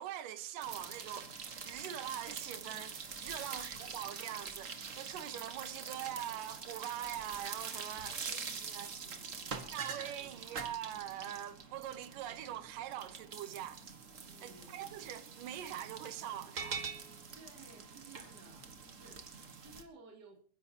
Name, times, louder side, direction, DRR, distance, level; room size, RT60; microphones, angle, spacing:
voice 1, 0.0-8.2 8.7-8.9 9.7-13.9 14.4-16.8, right 11 dB, 90° right, 2.6 m, -43 dB
sound 1, 0.6-19.8, right 5 dB, 70° right, 0.7 m, -45 dB
voice 2, 3.3-4.1 8.0-9.9 10.2-11.4 14.1-15.0 17.3-20.4, right 3 dB, 35° right, 3.0 m, -59 dB
28.0 x 10.5 x 2.8 m
omnidirectional pair, 3.7 m